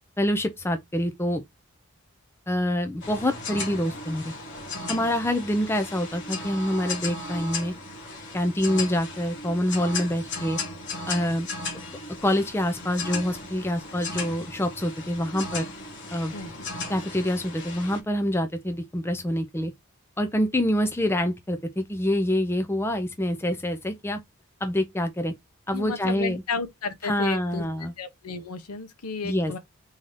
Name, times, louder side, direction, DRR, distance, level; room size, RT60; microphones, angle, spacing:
voice 1, 0.2-1.4 2.5-4.3 4.9-7.7 8.3-10.6 11.1-11.5 12.2-15.7 16.1-16.3 16.9-19.7 20.2-24.2 24.6-25.3 25.7-26.4 27.0-27.9 29.2-29.5, left 1 dB, 10° left, 0.4 m, -26 dB
sound 1, 3.0-18.0, left 3 dB, 55° left, 1.5 m, -36 dB
voice 2, 25.7-27.7 28.0-29.6, left 4 dB, 85° left, 1.0 m, -33 dB
3.9 x 2.8 x 4.8 m
head